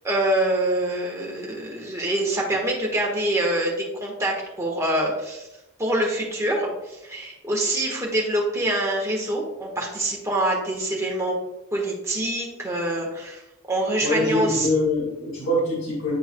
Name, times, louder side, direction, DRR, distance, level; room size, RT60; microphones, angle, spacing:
voice 1, 0.0-3.7 4.0-5.5 5.8-11.4 11.7-13.4 13.7-14.7, right 1 dB, 15° right, -2 dB, 1.3 m, -25 dB
voice 2, 14.0-16.2, left 1 dB, 70° left, -6 dB, 2.0 m, -24 dB
9.4 x 4.6 x 2.2 m, 0.97 s
head